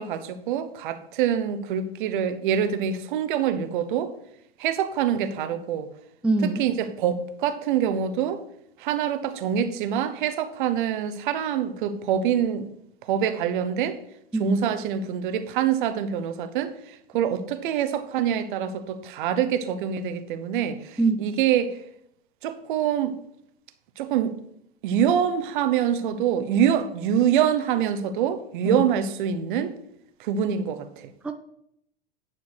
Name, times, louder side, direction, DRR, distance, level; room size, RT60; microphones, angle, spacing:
voice 1, 0.0-4.1 4.6-5.9 6.4-8.4 8.8-12.7 13.0-14.0 14.4-21.8 22.4-23.2 24.0-24.3 24.8-29.7 30.2-31.1, right 9 dB, 55° right, 1.0 m, -25 dB
voice 2, 6.2-6.6 14.3-14.6 21.0-21.2 28.6-28.8 31.2-31.3, right 3 dB, 5° right, 0.6 m, -23 dB
10.0 x 4.4 x 6.3 m
figure-of-eight pair, 90°, 30 cm